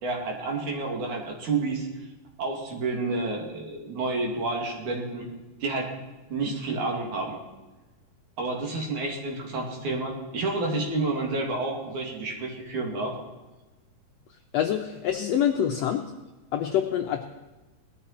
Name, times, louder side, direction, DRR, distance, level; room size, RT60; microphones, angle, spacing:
voice 1, 0.0-1.9 2.4-5.3 5.6-5.9 6.3-7.4 8.4-13.2, right 3 dB, 60° right, 1 dB, 3.8 m, -29 dB
voice 2, 14.5-16.0 16.5-17.2, left 9 dB, 90° left, 4 dB, 1.4 m, -25 dB
19.0 x 12.5 x 4.3 m, 1.2 s
omnidirectional pair, 4.0 m